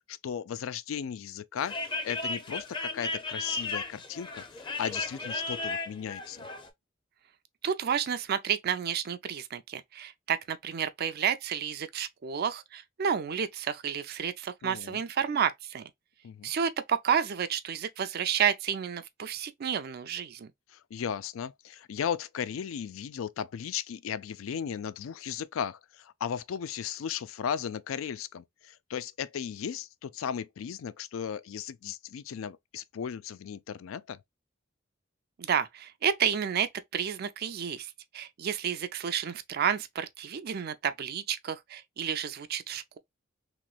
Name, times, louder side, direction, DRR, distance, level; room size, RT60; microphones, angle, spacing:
voice 1, 0.1-4.4 4.8-6.5 14.6-15.0 16.2-16.5 20.7-34.2, left 8 dB, 85° left, 0.4 m, -36 dB
sound 1, 1.6-6.7, left 3 dB, 25° left, 0.6 m, -35 dB
voice 2, 7.6-15.9 16.4-20.5 35.4-43.0, right 8 dB, 50° right, 0.4 m, -31 dB
3.0 x 3.0 x 2.3 m
head